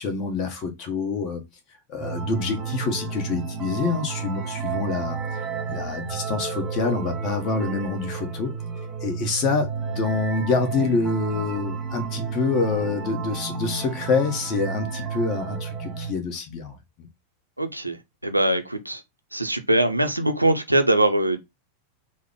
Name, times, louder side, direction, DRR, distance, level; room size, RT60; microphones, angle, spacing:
voice 1, 0.0-1.4 1.9-8.5 9.0-17.1, left 4 dB, 40° left, 1.1 m, -26 dB
sound 1, 2.0-16.1, right 5 dB, 15° right, 0.9 m, -31 dB
voice 2, 17.6-18.0 18.2-19.0 19.3-21.4, right 1 dB, 85° right, 0.4 m, -22 dB
3.6 x 2.1 x 3.6 m
figure-of-eight pair, 90°, 0 cm